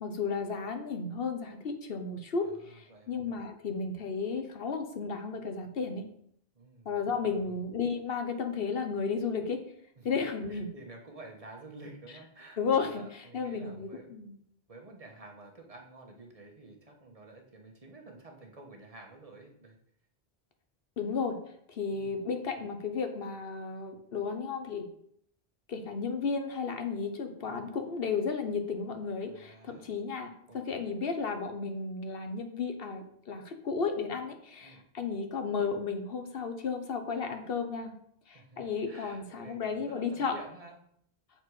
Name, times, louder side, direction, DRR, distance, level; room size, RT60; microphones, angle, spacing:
voice 1, 0.0-6.0 6.8-9.6 10.0-10.7 12.6-14.3 21.0-21.4 21.7-24.9 25.7-37.9 38.3-40.4, left 5 dB, 65° left, 6 dB, 1.1 m, -33 dB
voice 2, 2.4-3.1 6.5-7.5 10.0-10.2 10.5-14.1 14.7-19.8 21.9-22.1 27.4-27.7 29.3-29.9 30.5-30.7 34.6-34.8 38.3-40.8, right 2 dB, 35° right, 1 dB, 1.3 m, -51 dB
7.6 x 4.2 x 4.8 m, 0.69 s
omnidirectional pair, 1.0 m